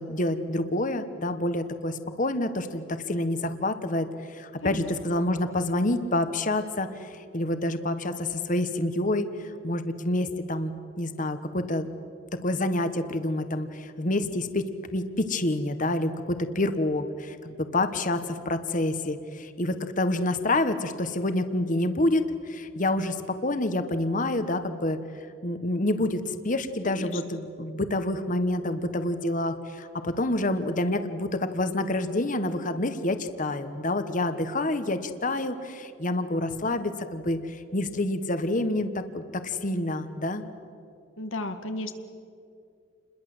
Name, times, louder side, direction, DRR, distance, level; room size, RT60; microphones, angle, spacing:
voice 1, 0.0-10.7 11.0-11.9 12.4-25.0 25.4-40.4, left 1 dB, 40° left, 10 dB, 1.3 m, -28 dB
voice 2, 26.8-27.2 41.2-41.9, left 2 dB, 90° left, 7 dB, 2.0 m, -33 dB
29.0 x 21.5 x 7.9 m, 2.5 s
head